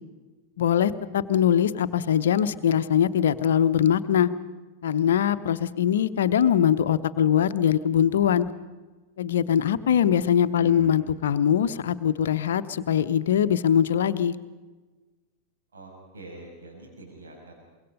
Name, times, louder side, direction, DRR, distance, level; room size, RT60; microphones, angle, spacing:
voice 1, 0.6-4.3 4.8-8.5 9.2-14.4, left 9 dB, 60° left, 12 dB, 0.8 m, -22 dB
voice 2, 10.5-11.0 15.7-17.5, right 3 dB, 65° right, 0 dB, 6.3 m, -43 dB
24.5 x 22.0 x 5.3 m, 1.3 s
figure-of-eight pair, 90°, 0 cm